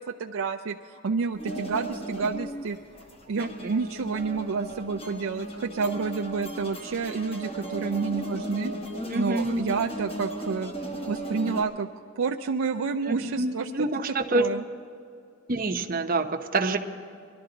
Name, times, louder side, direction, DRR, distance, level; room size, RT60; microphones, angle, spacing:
voice 1, 0.0-2.8 3.3-8.7 9.1-10.7 11.1-11.9 12.2-13.9 14.3-14.6, right 5 dB, 75° right, 4 dB, 0.4 m, -29 dB
sound 1, 1.3-11.6, right 1 dB, 30° left, 1.1 m, -36 dB
voice 2, 3.4-3.7 9.1-9.6 13.1-14.5 15.5-16.8, right 2 dB, 40° right, 5 dB, 0.7 m, -27 dB
21.5 x 12.0 x 3.9 m, 2.5 s
head